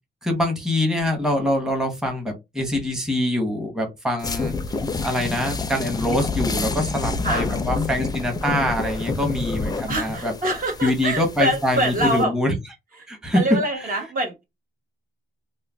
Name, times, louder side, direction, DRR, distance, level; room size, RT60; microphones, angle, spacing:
voice 1, 0.2-4.5 5.0-10.3 10.8-12.6 13.1-13.4 13.8-13.9, left 1 dB, 5° right, 0.9 m, -24 dB
sound 1, 4.2-12.2, left 3 dB, 20° left, 0.4 m, -28 dB
voice 2, 9.9-12.3 13.0-13.1 13.3-14.4, right 1 dB, 45° right, 1.0 m, -24 dB
2.4 x 2.2 x 3.4 m
cardioid pair, 90°, 20 cm